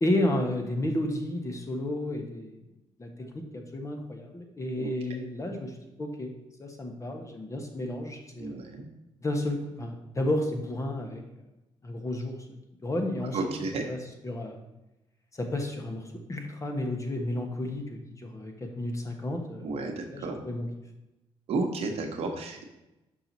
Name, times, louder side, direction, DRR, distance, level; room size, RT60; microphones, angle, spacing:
voice 1, 0.0-2.6 3.0-6.3 6.6-8.6 9.2-11.2 11.8-12.4 12.8-13.6 13.9-14.0 14.2-14.6 15.4-19.8 20.1-20.7, left 1 dB, 30° left, 3 dB, 1.2 m, -32 dB
voice 2, 8.4-8.8 13.3-13.8 19.6-20.4 21.5-22.6, right 3 dB, 70° right, 3 dB, 1.1 m, -32 dB
6.1 x 4.6 x 4.1 m, 0.96 s
cardioid pair, 75°, 11 cm